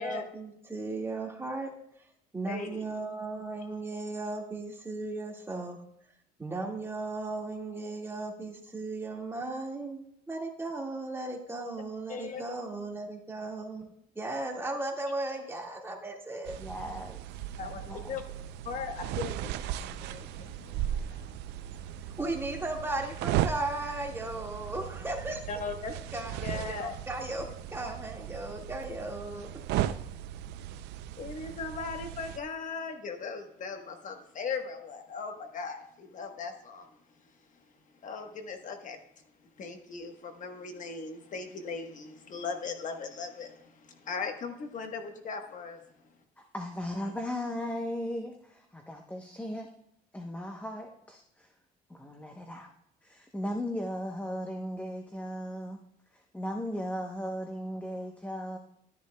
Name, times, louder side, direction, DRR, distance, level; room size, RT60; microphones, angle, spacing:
voice 1, 0.0-1.7 2.0-5.8 6.4-13.9 14.2-16.5 22.2-25.4 26.1-29.5, right 2 dB, 15° right, 0 dB, 1.8 m, -36 dB
voice 2, 2.4-2.8 12.1-12.4 17.6-18.2 18.6-22.1 25.5-25.9 26.4-26.9 31.2-36.9 38.0-39.0 39.6-46.1, left 5 dB, 50° left, 5 dB, 1.2 m, -39 dB
sound 1, 16.5-32.4, right 12 dB, 85° right, 0.5 m, -36 dB
voice 3, 16.6-17.4 17.9-18.1 46.4-49.7 50.1-51.5 51.9-52.7 53.0-55.8 56.1-58.6, equal, 10° left, 3 dB, 0.8 m, -37 dB
12.5 x 10.0 x 2.2 m, 0.74 s
cardioid pair, 110°, 17 cm